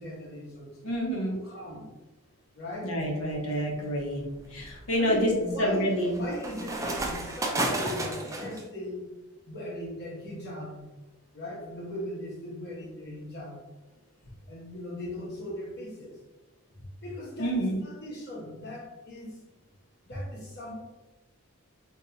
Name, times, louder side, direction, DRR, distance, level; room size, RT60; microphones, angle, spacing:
voice 1, 0.0-0.8 1.3-1.9 2.5-2.9 5.0-9.1 9.5-10.9 11.3-13.6 14.5-16.1 17.0-19.4 20.0-20.8, left 1 dB, 55° left, -4 dB, 1.1 m, -38 dB
voice 2, 0.8-1.3 2.8-4.2 4.5-5.3 5.6-6.2 17.4-17.8, equal, 85° left, -1 dB, 0.8 m, -28 dB
sound 1, 3.1-3.4 4.0-8.6, right 1 dB, 15° right, 0.3 m, -33 dB
2.6 x 2.3 x 3.8 m, 1.1 s
head